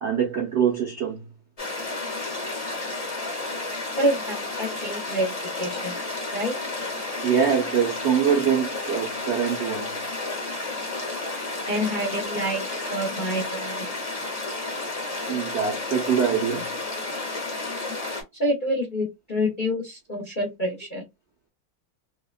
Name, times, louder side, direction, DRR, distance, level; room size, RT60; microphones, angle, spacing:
voice 1, 0.0-1.2 7.2-9.9 15.3-16.6, right 7 dB, 70° right, 0.6 m, -24 dB
sound 1, 1.6-18.2, left 2 dB, 30° left, 0.7 m, -32 dB
voice 2, 4.0-5.9 6.3-6.5 11.7-13.9 18.4-21.0, equal, 75° left, 0.4 m, -27 dB
3.6 x 2.1 x 2.3 m
omnidirectional pair, 2.3 m